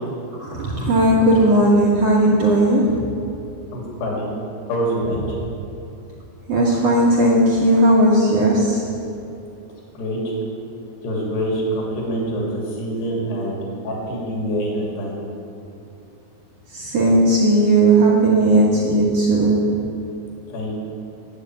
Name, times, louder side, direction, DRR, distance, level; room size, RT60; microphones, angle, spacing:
voice 1, 0.4-2.9 6.5-8.8 16.7-19.6, right 1 dB, 70° right, -4 dB, 1.5 m, -16 dB
voice 2, 3.7-4.3 4.7-5.4 9.9-10.3 11.0-15.2 20.5-20.8, equal, 70° left, -2 dB, 4.6 m, -25 dB
9.9 x 8.4 x 9.2 m, 2.8 s
omnidirectional pair, 4.9 m